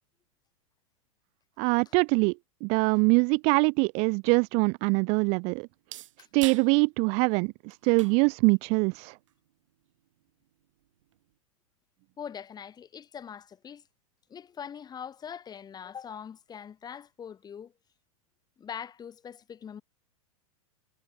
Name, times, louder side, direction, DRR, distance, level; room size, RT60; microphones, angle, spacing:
voice 1, 1.6-2.3 2.6-5.7 6.3-9.2, right 34 dB, 35° right, 0.4 m, -24 dB
sound 1, 3.4-11.4, right 14 dB, 60° right, 7.8 m, -50 dB
voice 2, 12.2-13.8 14.3-17.7 18.6-19.8, left 8 dB, 20° left, 6.2 m, -42 dB
figure-of-eight pair, 100°, 18 cm